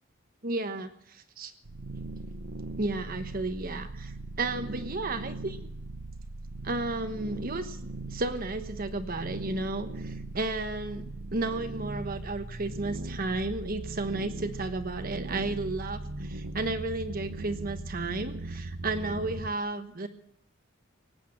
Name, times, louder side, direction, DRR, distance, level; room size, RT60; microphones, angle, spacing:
voice 1, 0.4-1.5 2.8-5.6 6.6-7.8 8.1-20.1, right 2 dB, 45° right, 8 dB, 1.1 m, -33 dB
sound 1, 1.6-19.5, right 2 dB, 90° right, 1.0 m, -39 dB
18.0 x 8.4 x 8.7 m, 0.71 s
head